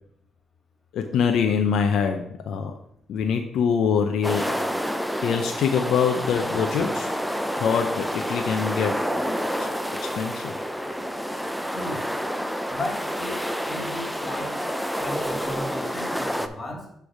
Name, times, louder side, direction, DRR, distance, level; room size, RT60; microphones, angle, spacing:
voice 1, 0.9-2.7 3.1-4.6 5.2-7.1 7.6-9.0 9.6-9.7 10.0-10.5, left 6 dB, 75° left, 0.6 m, -24 dB
sound 1, 4.2-16.5, equal, ahead, 0.5 m, -29 dB
voice 2, 11.7-12.1 12.7-14.7 15.0-17.0, left 1 dB, 30° left, 2.1 m, -35 dB
8.5 x 3.3 x 4.9 m
cardioid pair, 90°, 0 cm